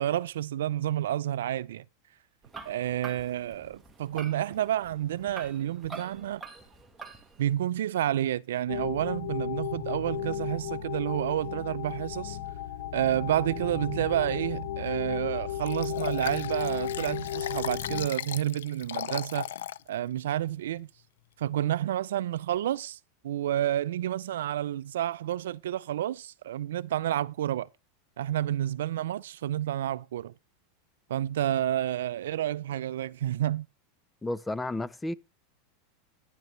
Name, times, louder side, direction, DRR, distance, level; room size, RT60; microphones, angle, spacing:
voice 1, 0.0-1.8 2.7-6.4 7.4-12.4 12.9-19.5 19.9-20.9 21.4-23.0 23.2-27.7 28.2-30.3 31.1-33.7, right 12 dB, 85° right, 0.4 m, -30 dB
sound 1, 2.4-7.5, right 4 dB, 15° right, 1.6 m, -46 dB
sound 2, 8.7-18.1, left 10 dB, 70° left, 1.3 m, -34 dB
Liquid, 15.7-19.8 20.3-20.4, left 11 dB, 90° left, 0.5 m, -37 dB
voice 2, 34.2-35.1, left 2 dB, 10° left, 0.4 m, -32 dB
10.5 x 10.0 x 3.2 m
supercardioid pair, 130°, 0 cm